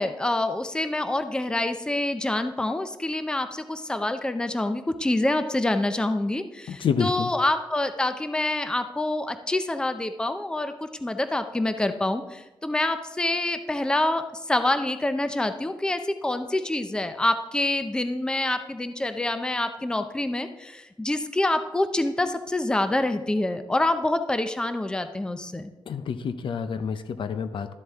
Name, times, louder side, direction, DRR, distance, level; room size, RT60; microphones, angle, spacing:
voice 1, 0.0-14.2 14.5-25.7, left 2 dB, 10° left, 9 dB, 0.5 m, -26 dB
voice 2, 6.7-7.3 25.9-27.7, left 6 dB, 65° left, 11 dB, 0.6 m, -28 dB
12.5 x 7.7 x 3.6 m, 1.0 s
wide cardioid pair, 125°, 9 cm